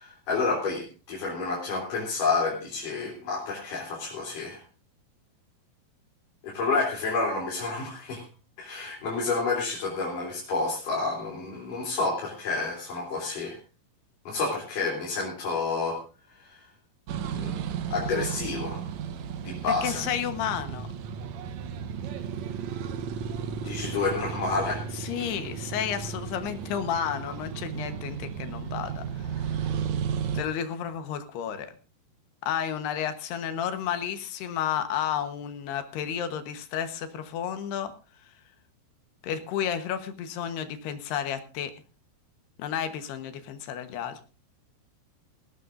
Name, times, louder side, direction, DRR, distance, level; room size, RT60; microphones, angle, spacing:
voice 1, 0.0-4.6 6.4-8.2 8.6-13.6 14.3-16.0 16.4-16.6 17.4-17.6 17.9-18.8 19.4-20.0 23.6-24.8, left 4 dB, 55° left, -2 dB, 4.6 m, -29 dB
sound 1, 17.1-30.4, right 7 dB, 85° right, 1.6 m, -34 dB
voice 2, 19.7-20.9 24.9-29.6 30.3-31.7 32.4-37.9 39.2-41.7 42.6-44.2, left 9 dB, 75° left, 9 dB, 3.2 m, -32 dB
18.5 x 17.5 x 2.6 m, 0.33 s
omnidirectional pair, 4.8 m